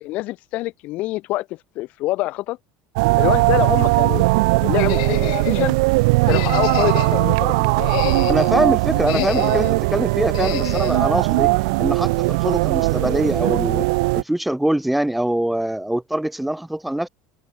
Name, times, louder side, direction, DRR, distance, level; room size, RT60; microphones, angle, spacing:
voice 1, 0.0-1.5 1.7-2.6 3.2-4.3 4.6-5.8 6.3-7.7 8.9-9.3, left 18 dB, 45° left, 1.3 m, -25 dB
sound 1, 3.0-14.2, right 26 dB, 80° right, 0.6 m, -19 dB
sound 2, 4.8-5.7 6.3-7.2 7.7-8.6 9.0-9.8 10.3-11.0, left 25 dB, 80° left, 3.0 m, -28 dB
voice 2, 8.3-11.5 11.8-13.9 14.1-17.1, right 1 dB, 5° right, 0.5 m, -23 dB
open air
cardioid pair, 165°, 3 cm